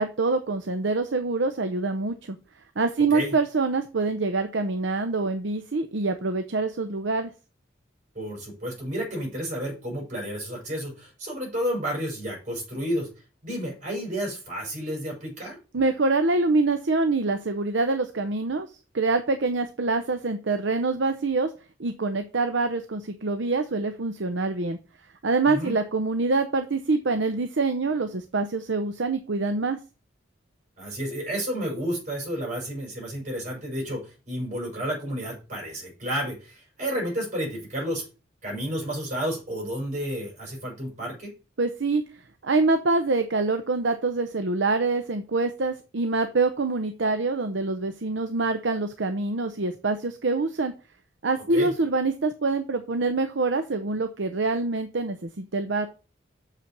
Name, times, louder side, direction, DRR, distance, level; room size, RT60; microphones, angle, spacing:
voice 1, 0.0-2.4 2.8-7.3 15.7-18.7 18.9-21.5 21.8-24.8 25.2-29.8 41.6-42.0 42.4-50.7 51.2-55.9, right 3 dB, 70° right, 8 dB, 0.7 m, -25 dB
voice 2, 8.1-13.1 13.4-15.6 25.5-25.8 30.8-38.0 38.4-41.3 51.5-51.7, equal, 40° right, -1 dB, 5.7 m, -31 dB
6.8 x 5.8 x 5.9 m, 0.33 s
head